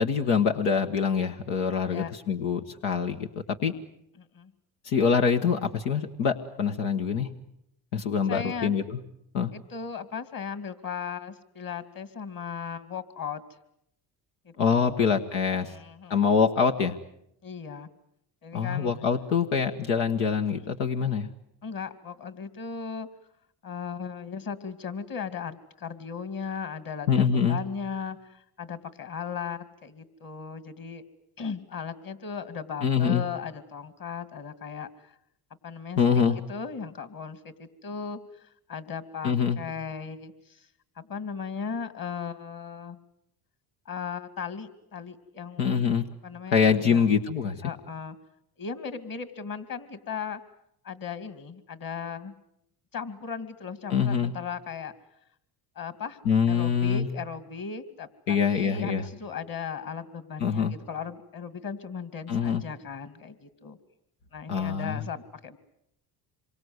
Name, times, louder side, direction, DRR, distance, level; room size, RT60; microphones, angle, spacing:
voice 1, 0.0-3.3 3.6-3.7 4.8-7.3 7.9-9.0 9.3-9.5 14.6-15.7 16.1-16.9 18.5-21.3 27.1-27.6 32.8-33.2 36.0-36.4 39.2-39.6 45.6-46.1 46.5-47.6 53.9-54.3 56.2-57.1 58.3-59.0 60.4-60.7 62.3-62.6 64.5-65.0, left 6 dB, 90° left, 4 dB, 1.4 m, -24 dB
voice 2, 4.2-4.5 8.3-8.7 9.5-13.4 14.4-15.0 15.6-16.1 17.4-17.9 18.4-18.9 21.6-23.1 23.6-31.0 31.4-35.1 35.6-36.0 36.5-40.7 41.0-43.0 43.9-45.8 46.2-47.2 47.6-48.2 48.6-50.4 50.8-52.3 52.9-54.9 55.8-56.2 56.5-63.8 64.3-65.6, left 6 dB, 45° left, 12 dB, 2.5 m, -37 dB
27.0 x 24.0 x 8.1 m, 0.78 s
supercardioid pair, 65°, 47 cm